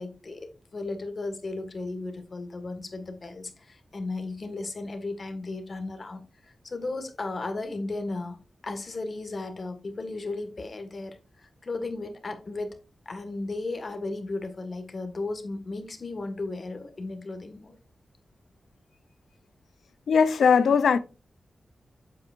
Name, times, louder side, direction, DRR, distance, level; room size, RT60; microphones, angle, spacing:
voice 1, 0.0-12.8 13.1-17.8, left 2 dB, 50° left, 1.8 m, -35 dB
voice 2, 20.1-21.0, left 6 dB, 90° left, 0.6 m, -19 dB
8.4 x 7.4 x 2.6 m
cardioid pair, 75°, 0 cm